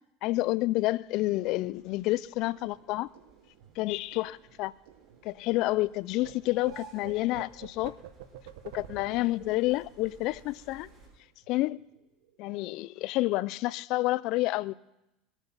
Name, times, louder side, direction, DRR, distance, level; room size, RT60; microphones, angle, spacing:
voice 1, 0.2-3.1 3.8-4.7 5.2-8.0 8.7-10.9 11.5-11.8 12.4-14.7, left 19 dB, 60° left, 0.4 m, -29 dB
sound 1, 0.7-11.1, right 4 dB, 35° right, 6.3 m, -57 dB
sound 2, 2.5-5.9 6.2-11.2 11.4-11.7 12.0-12.5, right 11 dB, 80° right, 1.3 m, -50 dB
21.5 x 9.0 x 5.8 m
supercardioid pair, 100°, 0 cm